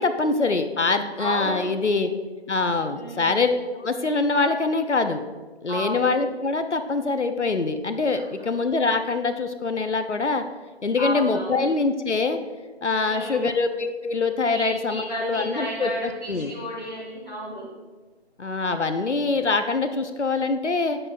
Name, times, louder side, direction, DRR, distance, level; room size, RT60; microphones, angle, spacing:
voice 1, 0.0-2.1 2.5-3.5 3.8-5.2 5.6-10.4 10.8-12.4 12.8-16.5 18.4-21.0, left 3 dB, 85° left, 8 dB, 0.7 m, -24 dB
voice 2, 1.2-1.7 2.9-3.4 5.7-6.1 8.1-8.2 11.0-11.6 13.0-13.5 14.5-17.7, equal, 5° left, -17 dB, 1.2 m, -32 dB
9.5 x 7.8 x 2.5 m, 1.3 s
figure-of-eight pair, 165°, 34 cm